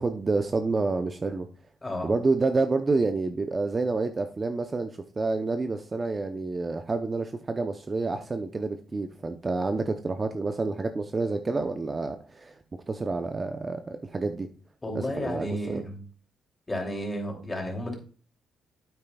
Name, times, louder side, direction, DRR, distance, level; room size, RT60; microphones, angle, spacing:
voice 1, 0.0-1.5 2.0-4.9 5.2-12.5 12.9-14.5 15.2-15.8, right 3 dB, 30° right, 7 dB, 0.7 m, -28 dB
voice 2, 14.8-16.1 16.7-17.9, equal, 20° left, 2 dB, 2.8 m, -32 dB
9.0 x 8.6 x 2.3 m, 0.39 s
cardioid pair, 90°, 0 cm